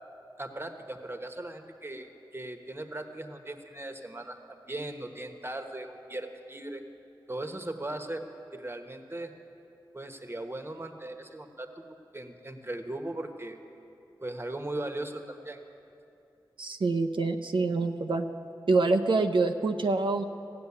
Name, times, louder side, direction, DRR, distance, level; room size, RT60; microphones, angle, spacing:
voice 1, 0.4-6.8 7.3-9.3 9.9-13.6 14.2-15.6, right 1 dB, 30° right, 5 dB, 1.2 m, -38 dB
voice 2, 16.6-18.3 18.7-20.2, right 3 dB, 80° right, 4 dB, 0.7 m, -26 dB
15.5 x 7.7 x 9.7 m, 2.8 s
cardioid pair, 45°, 8 cm